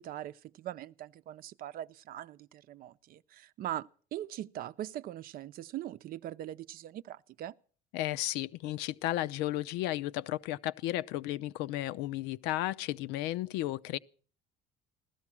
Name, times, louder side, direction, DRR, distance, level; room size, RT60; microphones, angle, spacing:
voice 1, 0.0-7.5, right 12 dB, 55° right, 0.6 m, -41 dB
voice 2, 7.9-14.0, left 15 dB, 75° left, 0.6 m, -34 dB
15.5 x 13.0 x 6.1 m
supercardioid pair, 100°, 18 cm